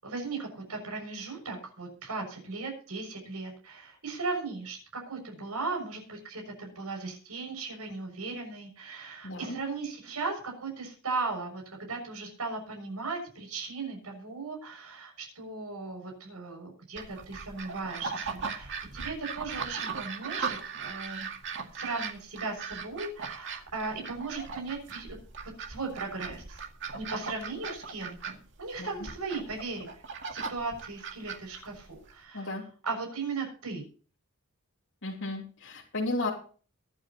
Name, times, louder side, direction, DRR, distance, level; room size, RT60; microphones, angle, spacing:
voice 1, 0.0-11.6 11.9-21.3 21.7-25.2 25.7-26.6 26.9-30.0 30.3-32.5 32.8-33.9, right 3 dB, 85° right, 1 dB, 6.5 m, -37 dB
voice 2, 9.2-9.6 28.8-28.9 32.3-32.6 35.0-36.3, left 2 dB, 55° left, -3 dB, 3.3 m, -33 dB
sound 1, 17.0-32.1, right 5 dB, 60° right, 2.1 m, -38 dB
23.0 x 9.4 x 2.9 m, 0.39 s
head